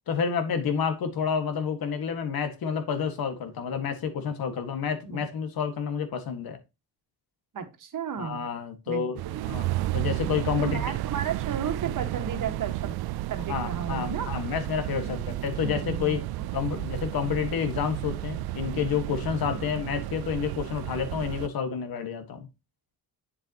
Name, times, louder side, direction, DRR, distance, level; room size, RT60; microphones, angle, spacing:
voice 1, 0.1-6.6 8.2-9.2 9.4-10.8 13.5-16.2 16.5-22.5, left 7 dB, 65° left, 1.7 m, -29 dB
voice 2, 7.5-8.4 8.9-9.4 10.6-13.0 13.3-14.3 15.1-16.9 19.5-19.8, right 7 dB, 55° right, 1.6 m, -34 dB
sound 1, 9.2-21.5, right 16 dB, 80° right, 0.5 m, -32 dB
8.0 x 7.3 x 2.9 m
cardioid pair, 100°, 38 cm